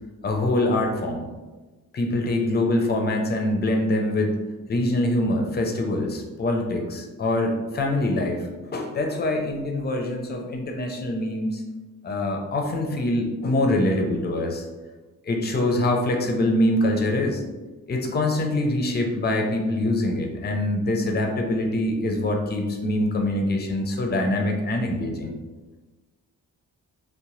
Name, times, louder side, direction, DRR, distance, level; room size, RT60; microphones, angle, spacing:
voice 1, 0.2-1.3 1.9-4.4 4.7-11.6 12.0-14.6 15.2-17.4 17.9-25.3, left 1 dB, 30° left, 2 dB, 0.5 m, -24 dB
2.8 x 2.0 x 3.0 m, 1.2 s
cardioid pair, 95°, 34 cm